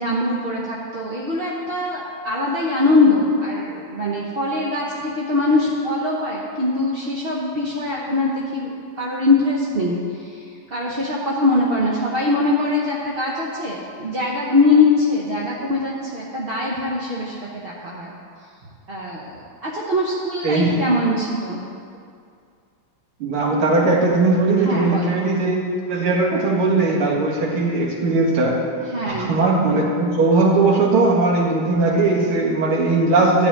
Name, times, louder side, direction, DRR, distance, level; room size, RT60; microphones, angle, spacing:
voice 1, 0.0-8.7 9.0-10.3 10.7-18.1 18.9-19.2 19.6-21.6 24.6-25.2 28.9-29.3, left 2 dB, 40° right, -5 dB, 0.9 m, -22 dB
voice 2, 20.4-20.8 23.2-25.6 25.9-28.6 29.0-33.5, right 3 dB, 75° right, -2 dB, 2.6 m, -19 dB
13.0 x 5.0 x 8.9 m, 2.3 s
omnidirectional pair, 2.4 m